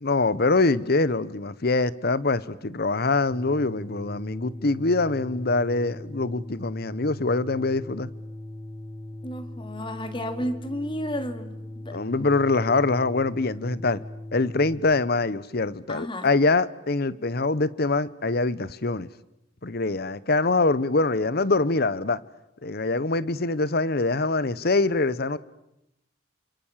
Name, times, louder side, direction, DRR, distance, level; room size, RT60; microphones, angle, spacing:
voice 1, 0.0-8.1 11.9-14.0 14.3-19.1 19.6-22.2 22.6-25.4, left 3 dB, 55° left, 1.0 m, -24 dB
sound 1, 3.3-14.7, left 1 dB, 10° left, 3.3 m, -39 dB
voice 2, 9.2-12.0 15.9-16.3, equal, 25° left, 2.6 m, -32 dB
29.0 x 26.0 x 7.4 m
head